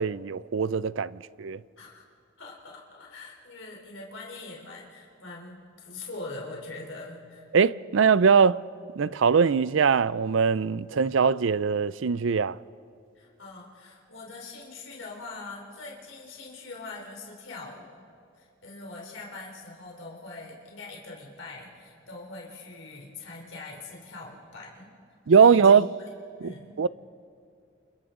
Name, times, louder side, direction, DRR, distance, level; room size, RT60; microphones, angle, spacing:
voice 1, 0.0-1.6 7.5-8.6 9.0-12.6 25.3-25.9 26.4-26.5 26.8-26.9, right 6 dB, 75° right, 0.5 m, -21 dB
voice 2, 2.4-7.5 13.2-18.0 18.4-24.9 25.3-25.8 26.4-26.8, left 3 dB, 75° left, 3.6 m, -43 dB
30.0 x 28.5 x 3.8 m
head